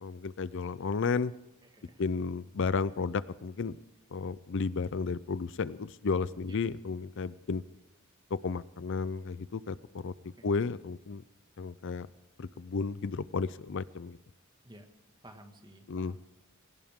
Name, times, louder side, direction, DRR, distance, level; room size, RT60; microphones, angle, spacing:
voice 1, 0.0-1.3 2.0-3.8 4.1-7.6 8.4-10.1 10.4-11.2 11.6-12.1 12.4-14.2 15.9-16.1, left 4 dB, 60° left, 17 dB, 0.5 m, -33 dB
voice 2, 1.6-2.0 6.5-6.6 10.4-10.5 14.6-14.9 15.2-16.2, right 1 dB, 20° right, 5 dB, 1.9 m, -53 dB
21.0 x 18.0 x 3.7 m, 0.98 s
head